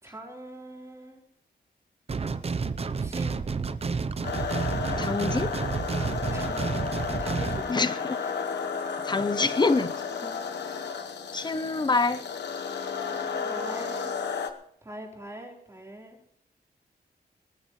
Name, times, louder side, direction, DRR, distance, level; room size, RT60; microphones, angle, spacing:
voice 1, 0.0-1.2 3.0-3.4 6.3-7.7 8.2-8.3 10.2-10.3 13.0-14.1 14.8-16.2, right 1 dB, 15° right, -1 dB, 3.9 m, -43 dB
sound 1, 2.1-7.6, right 4 dB, 35° right, 0.7 m, -30 dB
sound 2, 4.2-14.5, left 5 dB, 85° left, 1.1 m, -33 dB
voice 2, 5.0-5.6 7.7-8.2 9.0-9.9 11.3-12.2, left 3 dB, 25° left, 13 dB, 0.7 m, -26 dB
21.5 x 13.5 x 3.2 m, 0.70 s
wide cardioid pair, 135°, 17 cm